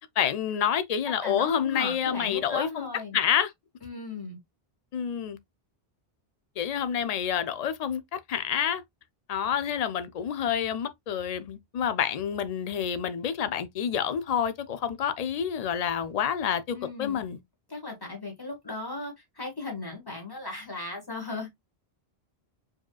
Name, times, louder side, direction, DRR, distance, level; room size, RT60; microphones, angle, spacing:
voice 1, 0.2-2.9 3.1-3.5 4.9-5.4 6.6-8.8 9.3-17.4, left 8 dB, 50° left, 0.5 m, -28 dB
voice 2, 1.2-3.2 3.8-4.4 16.7-17.2 17.7-21.5, left 3 dB, 20° left, 1.5 m, -36 dB
4.8 x 2.9 x 2.3 m
omnidirectional pair, 1.0 m